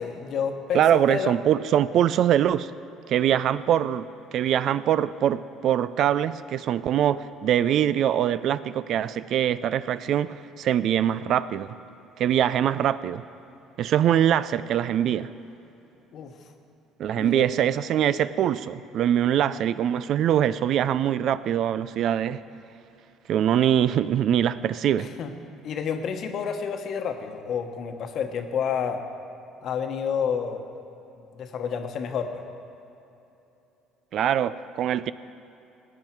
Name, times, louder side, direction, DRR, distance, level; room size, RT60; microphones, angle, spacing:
voice 1, 0.0-1.3 16.1-16.3 17.1-17.5 25.0-25.3 25.6-29.0 29.6-30.7 31.4-32.4, left 7 dB, 60° left, 6 dB, 1.1 m, -29 dB
voice 2, 0.7-2.7 3.1-11.8 12.2-13.2 13.8-15.3 17.0-22.4 23.3-25.1 34.1-35.1, right 10 dB, 60° right, 16 dB, 0.3 m, -23 dB
17.0 x 9.0 x 4.6 m, 2.9 s
supercardioid pair, 75°, 0 cm